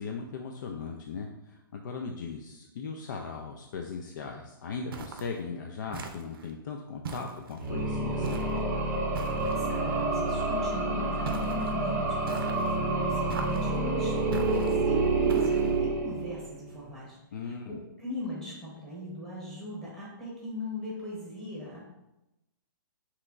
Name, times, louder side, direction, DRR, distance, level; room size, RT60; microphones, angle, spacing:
voice 1, 0.0-8.4 17.3-17.8, left 5 dB, 60° left, 2 dB, 0.4 m, -38 dB
sound 1, 4.9-5.4 5.9-6.5 7.0-7.7 8.2-8.6 9.1-9.7 11.3-11.7 12.3-12.8 13.3-13.8 14.3-14.8 15.3-15.8, right 5 dB, 85° right, 0.6 m, -40 dB
sound 2, 7.5-8.2 9.3-9.9 11.1-11.5 11.8-11.9 13.1-14.1 14.5-15.3, right 2 dB, 25° left, 1.3 m, -47 dB
sound 3, 7.5-16.6, right 2 dB, 15° right, 0.6 m, -28 dB
voice 2, 9.6-21.8, left 1 dB, 5° left, -6 dB, 1.1 m, -39 dB
5.6 x 3.0 x 2.5 m, 0.95 s
hypercardioid pair, 165°, 12 cm